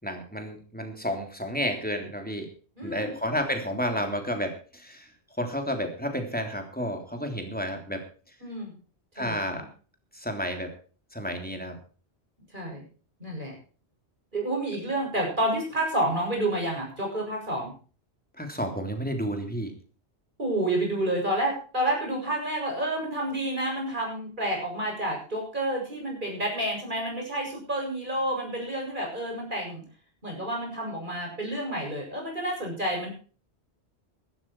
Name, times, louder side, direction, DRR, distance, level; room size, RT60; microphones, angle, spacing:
voice 1, 0.0-2.5 2.8-5.1 5.4-8.3 9.1-9.6 10.1-10.7 11.1-11.8 18.4-19.7, equal, 10° left, 4 dB, 3.3 m, -31 dB
voice 2, 2.8-3.1 8.4-8.7 9.2-9.6 12.5-12.8 13.2-13.6 14.3-17.7 20.4-29.8 30.2-33.1, right 1 dB, 45° right, 0 dB, 7.5 m, -29 dB
15.5 x 12.5 x 4.7 m, 0.39 s
omnidirectional pair, 1.1 m